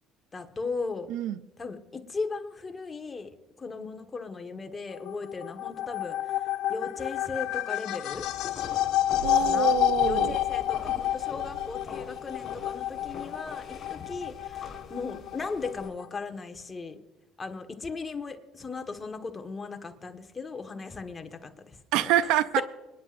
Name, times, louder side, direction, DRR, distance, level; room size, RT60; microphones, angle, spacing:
voice 1, 0.3-1.1 1.6-3.3 3.6-6.4 6.7-8.3 9.4-9.7 10.0-17.0 17.4-22.1 22.6-22.7, left 4 dB, 25° left, 6 dB, 1.4 m, -37 dB
voice 2, 1.1-1.4 9.2-10.4 21.9-22.6, right 13 dB, 75° right, 16 dB, 0.5 m, -26 dB
sound 1, 4.9-16.2, left 13 dB, 70° left, 0.6 m, -30 dB
sound 2, 8.1-15.9, left 2 dB, 40° left, 4.0 m, -43 dB
25.0 x 10.5 x 2.6 m, 1.1 s
supercardioid pair, 95°, 0 cm